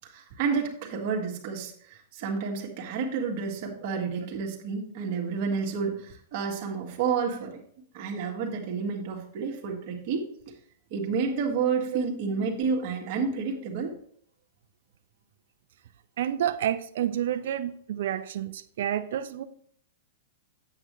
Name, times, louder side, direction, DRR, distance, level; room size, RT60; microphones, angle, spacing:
voice 1, 0.0-7.6 7.9-10.3 10.9-13.9, right 5 dB, 50° right, 1 dB, 1.9 m, -30 dB
voice 2, 16.2-19.4, right 10 dB, 70° right, 10 dB, 0.5 m, -29 dB
8.6 x 7.9 x 3.2 m, 0.63 s
hypercardioid pair, 125°, 0 cm